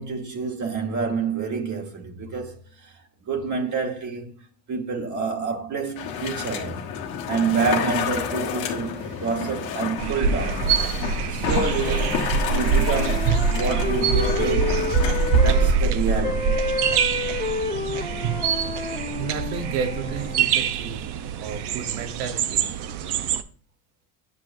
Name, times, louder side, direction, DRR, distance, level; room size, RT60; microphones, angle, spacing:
voice 1, 0.0-4.4 4.7-6.9 7.3-10.7 11.3-15.2 15.4-16.6, right 5 dB, 40° right, 1.4 m, -28 dB
sound 1, 6.0-15.8, left 8 dB, 90° left, 1.3 m, -30 dB
sound 2, 10.0-23.4, right 6 dB, 60° right, 0.7 m, -24 dB
voice 2, 11.0-11.3 18.2-18.7 19.2-21.0 21.4-22.7, right 6 dB, 90° right, 1.2 m, -33 dB
sound 3, 11.6-15.7 16.2-20.4, left 3 dB, 20° left, 1.5 m, -30 dB
9.1 x 6.0 x 2.6 m
cardioid pair, 100°, 45 cm